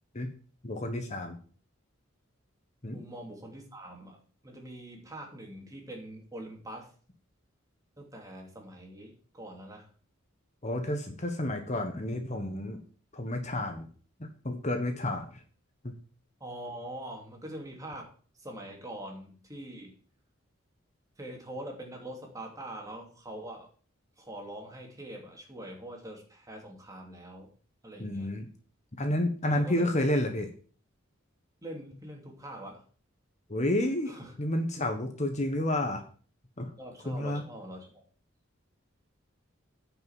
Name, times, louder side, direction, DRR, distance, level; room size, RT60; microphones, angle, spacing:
voice 1, 0.6-1.4 2.8-3.0 10.6-12.8 13.1-13.9 14.4-15.4 15.8-15.9 28.0-28.5 28.9-30.5 33.5-36.0 36.6-36.7 37.0-37.4, left 1 dB, 35° left, 5 dB, 1.3 m, -30 dB
voice 2, 2.9-6.9 8.0-9.9 16.4-20.0 21.2-23.7 24.2-27.5 27.8-28.3 29.4-29.8 31.6-32.8 34.1-34.3 36.8-38.0, right 1 dB, 15° right, 1 dB, 2.9 m, -43 dB
10.5 x 5.9 x 7.3 m, 0.42 s
head